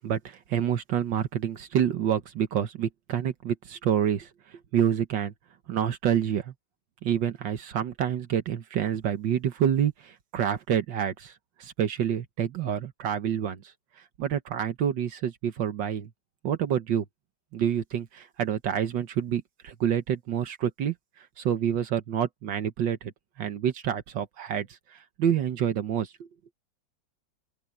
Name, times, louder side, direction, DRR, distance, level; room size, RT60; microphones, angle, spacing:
voice 1, 0.0-4.3 4.7-5.3 5.7-6.5 7.0-11.3 11.6-13.6 14.2-16.1 16.4-17.1 17.5-23.1 23.4-26.1, right 9 dB, 75° right, 1.8 m, -28 dB
open air
omnidirectional pair, 2.0 m